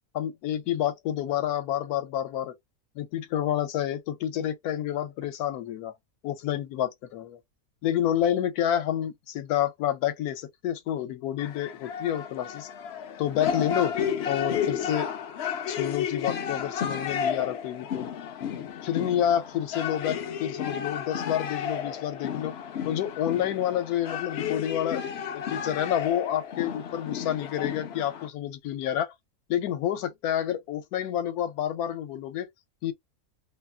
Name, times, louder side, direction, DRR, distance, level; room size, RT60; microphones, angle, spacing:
voice 1, 0.1-2.5 3.0-5.9 6.2-7.4 7.8-12.7 13.2-13.9 14.3-15.1 15.7-18.1 18.8-22.5 22.8-25.0 25.3-29.1 29.5-32.5 32.8-32.9, left 10 dB, 85° left, 1.1 m, -29 dB
sound 1, 11.4-28.3, left 8 dB, 70° left, 0.6 m, -32 dB
2.7 x 2.4 x 2.2 m
omnidirectional pair, 1.6 m